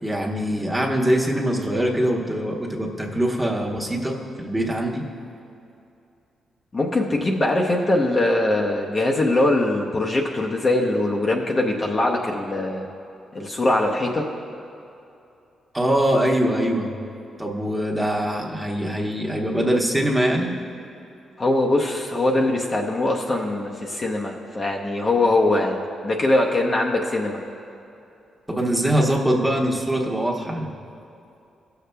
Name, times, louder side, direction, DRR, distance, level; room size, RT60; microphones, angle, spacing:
voice 1, 0.0-5.0 15.7-16.9 17.4-20.5 28.5-30.7, right 1 dB, 10° right, -2 dB, 1.0 m, -23 dB
voice 2, 6.7-12.9 13.3-14.3 21.4-27.4, left 2 dB, 35° left, -1 dB, 0.7 m, -22 dB
17.5 x 6.7 x 2.2 m, 2.7 s
cardioid pair, 100°, 0 cm